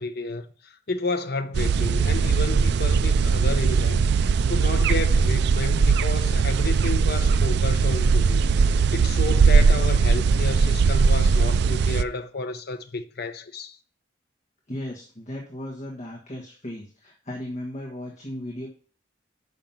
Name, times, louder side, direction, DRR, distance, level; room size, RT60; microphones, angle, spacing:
voice 1, 0.0-13.8, left 3 dB, 55° left, 0.8 m, -31 dB
sound 1, 1.5-12.0, right 5 dB, 60° right, 0.3 m, -20 dB
voice 2, 14.7-18.7, left 1 dB, 35° left, 1.5 m, -36 dB
6.4 x 5.4 x 5.8 m
head